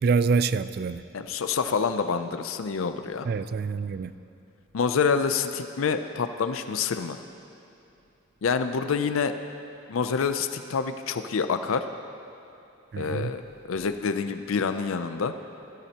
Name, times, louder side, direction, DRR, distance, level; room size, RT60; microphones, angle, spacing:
voice 1, 0.0-1.0 3.2-4.1 12.9-13.3, right 5 dB, 50° right, 13 dB, 0.3 m, -26 dB
voice 2, 1.1-3.3 4.7-7.2 8.4-9.3 9.9-11.8 13.0-13.4 13.7-15.3, left 5 dB, 90° left, 9 dB, 0.5 m, -27 dB
17.0 x 13.0 x 2.9 m, 2.8 s
head